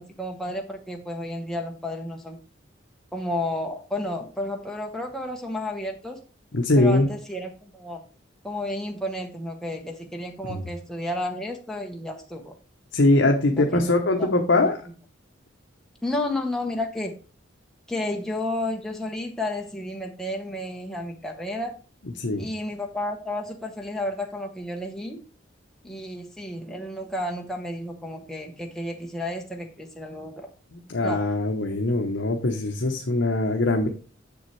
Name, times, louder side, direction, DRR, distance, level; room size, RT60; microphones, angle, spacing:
voice 1, 0.0-2.4 3.1-6.2 6.8-8.0 8.4-12.5 13.7-13.8 14.2-14.3 16.0-17.2 17.9-21.7 22.4-25.2 25.8-30.5 31.0-31.2, left 1 dB, ahead, 0 dB, 0.9 m, -31 dB
voice 2, 6.5-7.1 10.5-10.6 12.9-14.8 22.2-22.5 30.7-33.9, left 2 dB, 65° left, 2 dB, 0.8 m, -22 dB
7.0 x 7.0 x 3.2 m, 0.36 s
head